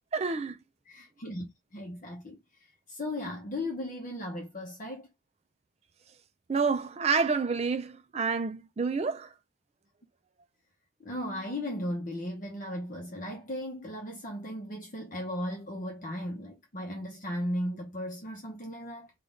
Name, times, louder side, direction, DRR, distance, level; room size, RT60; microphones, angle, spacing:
voice 1, 0.1-0.6 6.5-9.3, right 5 dB, 30° right, 0.4 m, -28 dB
voice 2, 0.9-1.5 1.7-5.1 11.0-19.1, left 1 dB, 40° left, 0.7 m, -36 dB
3.6 x 2.4 x 3.8 m
head